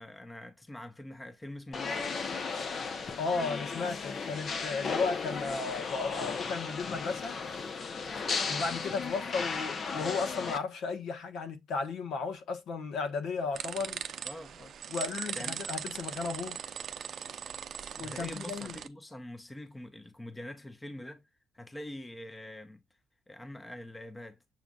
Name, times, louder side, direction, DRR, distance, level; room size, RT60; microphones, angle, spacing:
voice 1, 0.0-2.1 14.2-14.7 15.3-15.6 18.0-21.3 21.5-22.8 23.3-24.4, left 1 dB, 15° left, 0.7 m, -44 dB
sound 1, 1.7-10.6, left 5 dB, 50° left, 0.7 m, -35 dB
voice 2, 3.2-7.4 8.5-14.0 14.9-16.6 18.0-18.8, left 4 dB, 75° left, 1.2 m, -34 dB
sound 2, 13.5-18.9, right 8 dB, 60° right, 0.5 m, -40 dB
7.0 x 2.4 x 2.3 m
cardioid pair, 90°, 0 cm